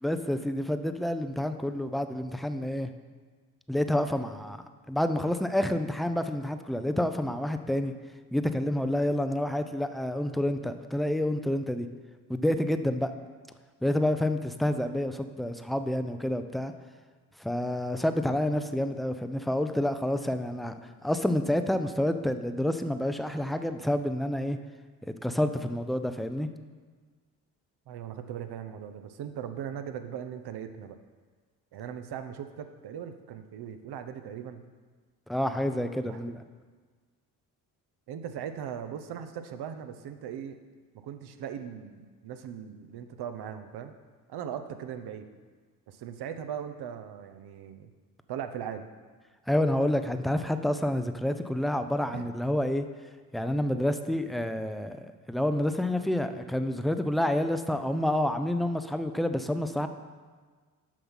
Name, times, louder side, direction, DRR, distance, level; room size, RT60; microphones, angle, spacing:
voice 1, 0.0-2.9 3.7-7.9 8.3-11.9 12.3-13.1 13.8-16.7 17.4-20.7 21.0-24.6 25.2-26.5 35.3-36.4 49.5-52.9 53.3-59.9, left 1 dB, ahead, 9 dB, 0.5 m, -28 dB
voice 2, 27.9-31.0 31.7-34.6 36.1-36.2 38.1-40.6 41.0-43.9 44.3-45.3 45.9-47.9 48.3-48.9 52.1-52.3, right 8 dB, 60° right, 8 dB, 0.8 m, -39 dB
7.4 x 5.7 x 5.6 m, 1.5 s
hypercardioid pair, 55°, 45 cm